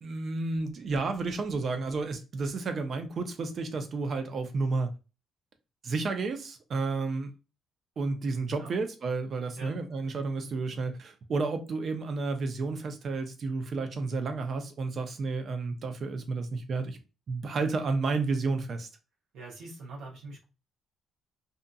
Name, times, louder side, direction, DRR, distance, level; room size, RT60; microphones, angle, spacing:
voice 1, 0.0-4.9 5.8-7.3 8.0-17.0 17.3-18.9, right 3 dB, 55° right, 0.5 m, -31 dB
voice 2, 19.3-20.4, right 2 dB, 85° right, 0.8 m, -43 dB
2.6 x 2.5 x 2.3 m
cardioid pair, 90°, 0 cm